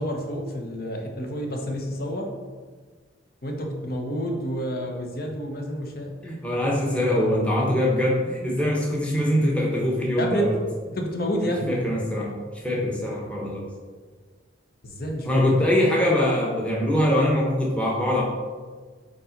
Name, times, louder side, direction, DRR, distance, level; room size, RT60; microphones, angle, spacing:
voice 1, 0.0-2.3 3.4-6.1 10.2-10.6 10.9-11.8 14.8-15.4, equal, 55° left, 2 dB, 1.1 m, -29 dB
voice 2, 6.2-10.6 11.4-12.3 12.6-13.7 15.3-18.2, left 1 dB, 5° left, -4 dB, 1.0 m, -23 dB
5.5 x 4.1 x 5.1 m, 1.5 s
head